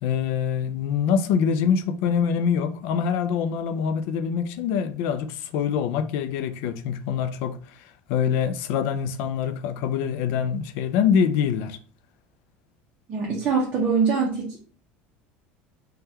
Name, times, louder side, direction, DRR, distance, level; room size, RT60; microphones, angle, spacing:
voice 1, 0.0-7.8 8.1-11.8, left 7 dB, 55° left, 0.3 m, -25 dB
voice 2, 13.1-14.6, right 5 dB, 30° right, 0.6 m, -23 dB
3.5 x 2.2 x 2.8 m
cardioid pair, 180°, 4 cm